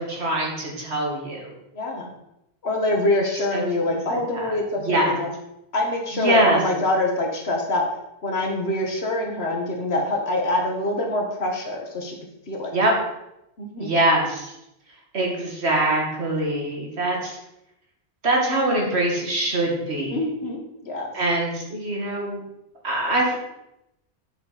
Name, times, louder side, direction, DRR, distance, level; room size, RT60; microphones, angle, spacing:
voice 1, 0.0-1.5 3.5-5.2 6.1-6.6 12.7-12.9 13.8-14.5 15.1-17.4 18.2-20.2 21.1-22.4 22.8-23.4, right 1 dB, 80° right, -1 dB, 2.1 m, -23 dB
voice 2, 1.7-2.1 2.6-5.3 5.7-7.8 8.2-12.2 12.5-12.7 13.6-13.9 20.1-21.1, left 2 dB, 70° left, 1 dB, 1.7 m, -25 dB
7.6 x 6.5 x 4.1 m, 0.84 s
omnidirectional pair, 1.1 m